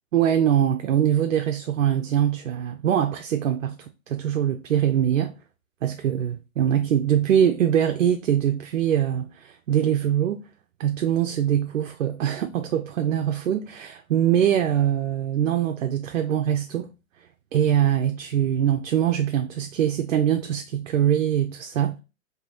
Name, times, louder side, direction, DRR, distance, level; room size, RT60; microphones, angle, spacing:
voice 1, 0.1-3.8 4.1-5.3 5.8-10.4 10.8-16.9 17.5-22.0, right 10 dB, 65° right, 0.6 m, -23 dB
4.1 x 2.8 x 3.6 m
hypercardioid pair, 160°, 42 cm